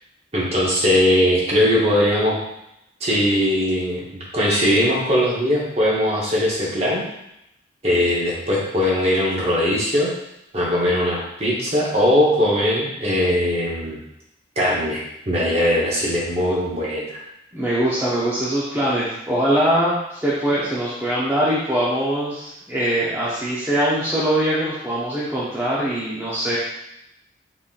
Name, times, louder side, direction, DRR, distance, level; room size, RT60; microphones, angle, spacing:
voice 1, 0.3-2.4 3.0-7.0 7.8-10.1 10.5-14.0 14.6-17.2, equal, 30° right, -4 dB, 0.9 m, -20 dB
voice 2, 17.5-26.6, right 1 dB, 10° right, -9 dB, 0.5 m, -22 dB
3.9 x 3.6 x 2.4 m, 0.84 s
head